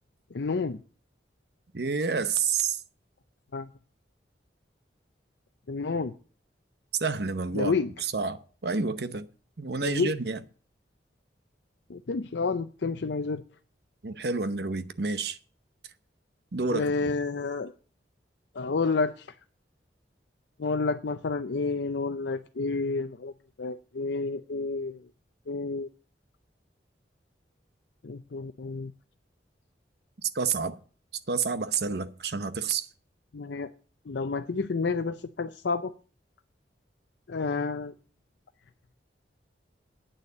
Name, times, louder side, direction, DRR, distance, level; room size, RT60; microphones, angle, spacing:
voice 1, 0.3-0.8 3.5-3.7 5.7-6.1 7.5-7.9 9.8-10.1 11.9-13.4 16.7-17.7 18.6-19.2 20.6-23.3 23.6-25.0 25.5-25.9 28.0-28.9 33.3-33.7 34.1-35.9 37.3-37.9, left 4 dB, 75° left, 0.6 m, -29 dB
voice 2, 1.7-2.8 7.0-7.7 8.0-9.3 9.6-10.4 14.0-15.4 16.5-17.1 30.2-30.8 31.3-32.9, right 5 dB, 60° right, 0.8 m, -29 dB
9.1 x 6.7 x 8.3 m
head